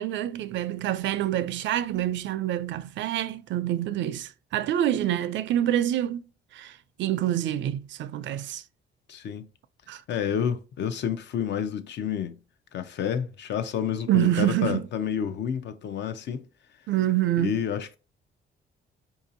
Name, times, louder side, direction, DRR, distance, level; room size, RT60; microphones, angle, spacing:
voice 1, 0.0-6.2 6.5-8.6 9.9-10.0 14.1-14.8 16.9-17.6, right 12 dB, 70° right, 0.4 m, -26 dB
voice 2, 9.1-9.5 10.1-12.4 12.7-16.5 17.4-18.0, left 8 dB, 60° left, 0.5 m, -29 dB
4.6 x 2.7 x 2.5 m
cardioid pair, 90°, 20 cm